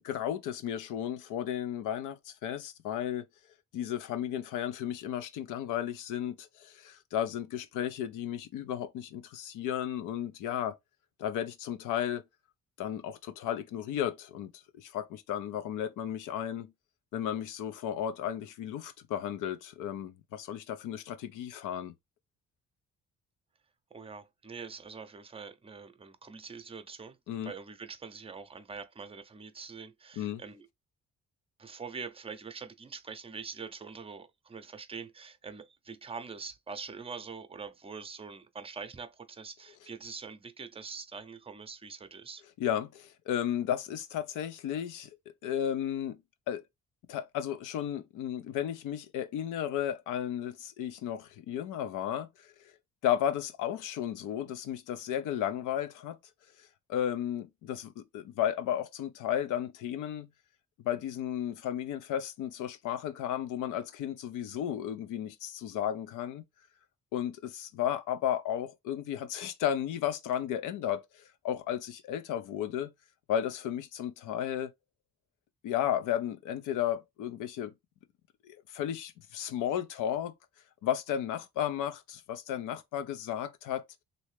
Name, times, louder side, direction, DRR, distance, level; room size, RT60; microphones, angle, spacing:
voice 1, 0.0-3.2 3.7-10.8 11.2-12.2 12.8-14.5 14.7-16.7 17.1-21.9 27.3-27.5 30.2-30.4 42.6-45.1 45.4-46.2 46.5-46.6 47.1-52.5 53.0-56.2 56.9-60.3 60.8-66.4 67.1-71.0 71.4-72.9 73.3-74.7 75.6-77.7 78.4-80.3 80.8-83.8, left 10 dB, 90° left, 0.6 m, -34 dB
voice 2, 23.9-27.2 27.4-30.7 31.6-42.4, right 5 dB, 20° right, 0.5 m, -44 dB
3.1 x 2.7 x 3.1 m
cardioid pair, 90°, 30 cm